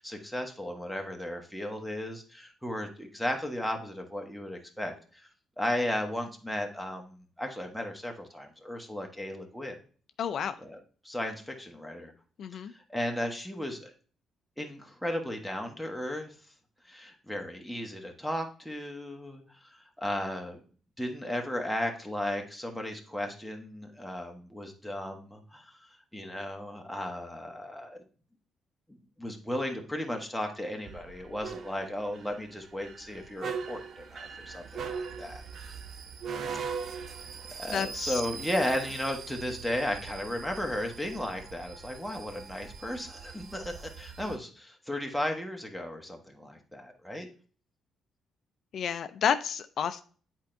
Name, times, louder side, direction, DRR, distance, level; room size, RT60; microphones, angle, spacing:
voice 1, 0.0-5.3 5.6-9.8 10.6-10.8 11.0-12.1 12.5-13.9 14.6-16.3 16.9-20.6 21.0-25.8 26.1-28.0 29.2-35.7 37.6-47.3, left 1 dB, ahead, 1.2 m, -35 dB
voice 2, 10.2-10.5 12.4-12.7 37.7-38.2 48.7-50.0, left 8 dB, 65° left, 0.4 m, -30 dB
sound 1, 30.9-44.4, right 6 dB, 60° right, 0.6 m, -41 dB
8.1 x 4.4 x 2.6 m
cardioid pair, 90°, 0 cm